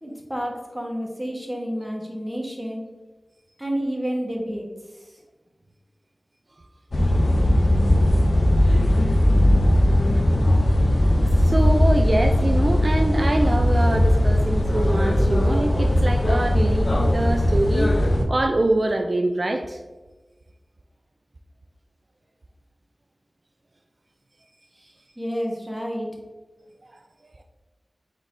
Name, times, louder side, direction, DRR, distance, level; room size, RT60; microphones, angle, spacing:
voice 1, 0.0-2.8 3.6-4.7 5.0-5.1 24.8-26.1, equal, 10° right, -1 dB, 1.2 m, -30 dB
sound 1, 6.9-18.2, left 1 dB, 65° left, 0.6 m, -19 dB
voice 2, 11.2-19.8 26.8-27.0 27.4-27.5, right 2 dB, 55° right, 4 dB, 0.3 m, -25 dB
4.6 x 4.1 x 2.6 m, 1.2 s
wide cardioid pair, 45°, 0 cm